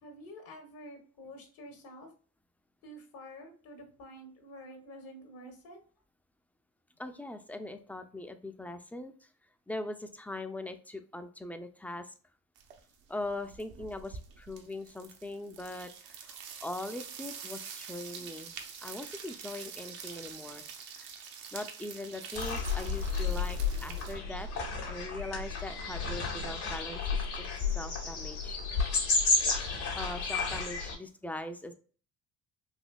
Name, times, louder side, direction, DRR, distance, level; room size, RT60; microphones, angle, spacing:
voice 1, 0.0-2.1 2.8-5.8, equal, 70° left, 3 dB, 1.3 m, -49 dB
voice 2, 7.0-9.3 9.7-12.1 13.1-18.5 18.8-20.7 21.0-21.1 21.5-24.5 24.9-28.6 29.9-31.7, left 2 dB, 5° left, 8 dB, 0.4 m, -41 dB
sound 1, 12.6-12.9 13.2-24.2, right 6 dB, 70° right, 0.8 m, -46 dB
sound 2, 22.3-31.0, left 4 dB, 90° left, 1.5 m, -32 dB
4.2 x 2.7 x 2.3 m, 0.41 s
supercardioid pair, 70°, 37 cm